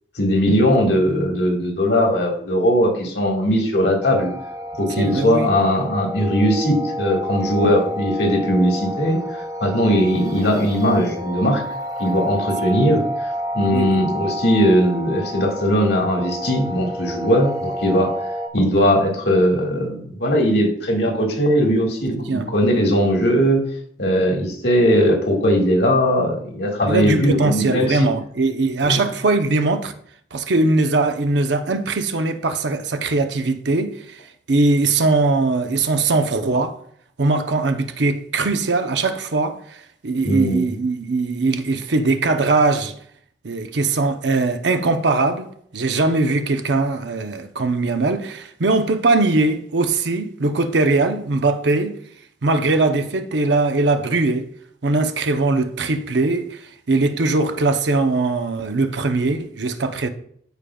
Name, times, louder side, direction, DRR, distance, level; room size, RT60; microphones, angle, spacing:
voice 1, 0.2-4.3 4.8-11.6 12.0-18.1 18.5-23.6 24.0-28.1 28.8-29.0 40.2-40.7, equal, 70° left, 1.8 m, -19 dB
sound 1, 4.0-18.5, equal, 20° right, 0.9 m, -29 dB
voice 2, 5.0-5.5 13.6-14.0 22.1-22.5 26.9-29.9 30.3-34.2 34.5-36.8 37.2-42.9 43.4-52.0 52.4-54.5 54.8-60.1, right 3 dB, 75° right, 0.7 m, -20 dB
14.0 x 5.0 x 2.3 m
head